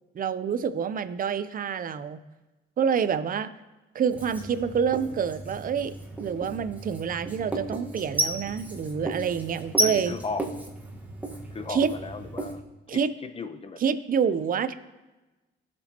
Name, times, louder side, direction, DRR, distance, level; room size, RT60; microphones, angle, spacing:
voice 1, 0.1-2.2 2.8-3.5 3.9-5.9 6.2-10.2 11.7-11.9 12.9-13.1 13.8-14.7, right 7 dB, 45° right, 12 dB, 0.6 m, -27 dB
Writing, 4.1-12.6, right 1 dB, 5° right, 1.4 m, -33 dB
voice 2, 9.8-10.4 11.5-12.6 13.2-13.8, left 4 dB, 30° left, 9 dB, 0.9 m, -35 dB
17.0 x 6.2 x 2.9 m, 1.1 s
cardioid pair, 90°, 20 cm